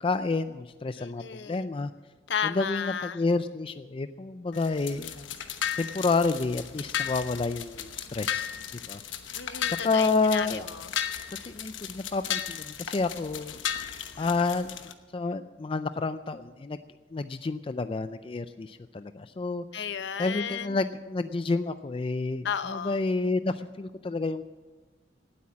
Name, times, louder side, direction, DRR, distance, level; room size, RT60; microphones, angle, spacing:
voice 1, 0.0-1.9 2.4-5.3 5.8-8.5 8.9-9.0 9.7-10.7 11.5-13.6 14.2-14.7 15.1-16.8 17.1-19.6 20.2-24.5, left 3 dB, 30° left, 11 dB, 0.4 m, -29 dB
voice 2, 1.0-1.7 2.3-3.2 9.3-11.0 14.2-14.6 19.7-20.8 22.4-23.0, left 7 dB, 65° left, 13 dB, 0.7 m, -34 dB
sound 1, 4.5-14.9, left 9 dB, 80° left, 1.0 m, -35 dB
18.0 x 8.5 x 7.2 m, 1.3 s
head